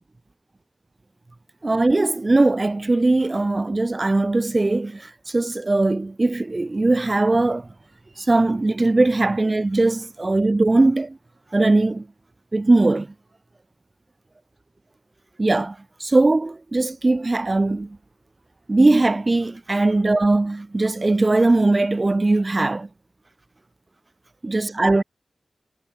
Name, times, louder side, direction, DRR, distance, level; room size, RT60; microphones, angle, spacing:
voice 1, 1.6-7.7 8.2-11.2 11.5-12.1 12.5-13.1 15.4-18.0 18.7-22.9 24.4-25.0, right 2 dB, 35° right, 1.3 m, -20 dB
cardioid pair, 45°, 0 cm